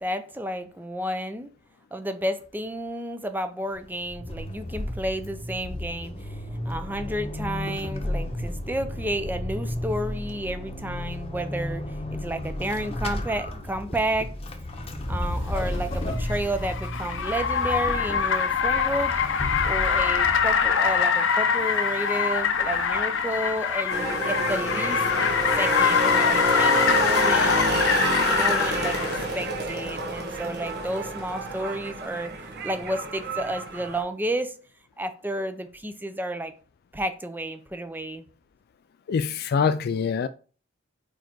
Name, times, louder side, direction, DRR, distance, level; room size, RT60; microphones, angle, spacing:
voice 1, 0.0-1.5 1.9-6.4 6.6-14.3 15.1-19.1 19.6-25.0 25.6-27.6 28.1-32.3 32.6-34.5 35.0-36.5 36.9-38.3, right 1 dB, 10° right, 0.6 m, -31 dB
Vehicle / Accelerating revving vroom / Squeak, 3.8-21.0, left 1 dB, 30° left, 0.9 m, -33 dB
Car, 15.4-29.3, left 6 dB, 65° left, 0.7 m, -24 dB
sound 1, 23.9-34.0, right 3 dB, 55° right, 1.3 m, -29 dB
voice 2, 39.1-40.3, left 6 dB, 50° left, 0.3 m, -24 dB
4.7 x 4.5 x 4.5 m
head